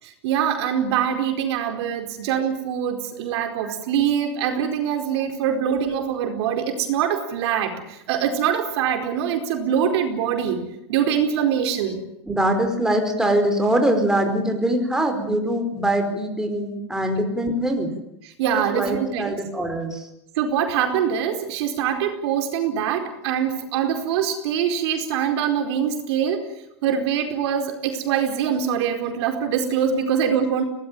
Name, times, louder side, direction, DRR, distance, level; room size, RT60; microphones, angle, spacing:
voice 1, 0.0-10.6 10.9-12.0 18.2-19.4 20.3-26.4 26.8-30.6, right 8 dB, 70° right, 5 dB, 4.6 m, -23 dB
voice 2, 12.3-17.9 18.5-20.1, right 1 dB, 5° right, 4 dB, 4.6 m, -23 dB
23.5 x 19.0 x 9.2 m, 0.82 s
supercardioid pair, 130°, 15 cm